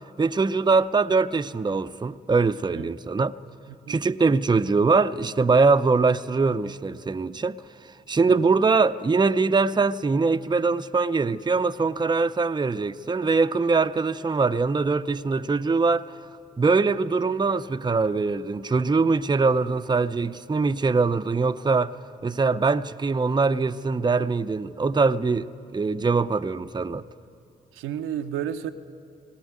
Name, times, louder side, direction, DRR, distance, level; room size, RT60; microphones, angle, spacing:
voice 1, 0.2-3.4 3.9-7.6 8.1-16.1 16.6-21.9 22.2-27.0, right 4 dB, 20° right, 0.6 m, -22 dB
voice 2, 27.7-28.7, right 10 dB, 80° right, 0.7 m, -31 dB
18.5 x 18.0 x 9.5 m
hypercardioid pair, 40°, 21 cm